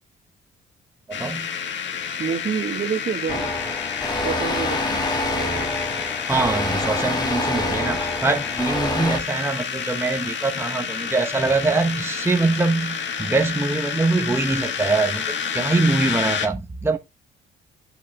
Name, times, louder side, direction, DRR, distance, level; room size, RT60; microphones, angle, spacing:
sound 1, 1.1-16.5, left 7 dB, 65° left, 1.8 m, -29 dB
voice 1, 1.1-1.5 6.3-17.0, right 3 dB, 10° right, 0.9 m, -23 dB
voice 2, 2.2-3.5 4.2-5.0, right 7 dB, 45° right, 1.5 m, -27 dB
sound 2, 3.3-9.2, left 1 dB, 20° left, 2.3 m, -27 dB
8.8 x 8.3 x 3.4 m
cardioid pair, 90°, 20 cm